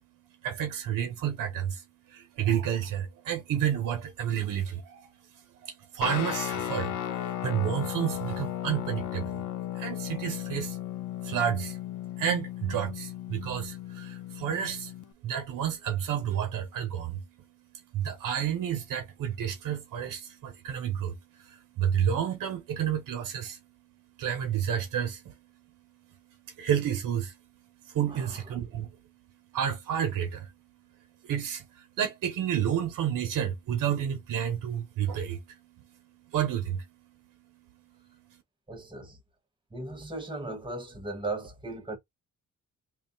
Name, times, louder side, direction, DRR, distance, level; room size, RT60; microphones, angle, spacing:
voice 1, 0.4-5.1 5.6-9.4 9.7-10.8 11.2-11.8 12.2-14.9 15.2-17.3 17.9-23.7 24.2-25.5 25.7-25.8 26.1-27.4 27.8-28.9 29.5-30.5 31.2-37.1 37.5-37.6 37.9-38.2, right 9 dB, 90° right, 1.2 m, -31 dB
Guitar, 6.0-15.1, left 12 dB, 70° left, 0.8 m, -35 dB
voice 2, 28.1-28.4 38.7-39.2 39.7-42.0, right 2 dB, 15° right, 1.5 m, -37 dB
3.3 x 2.7 x 3.9 m
cardioid pair, 120°, 31 cm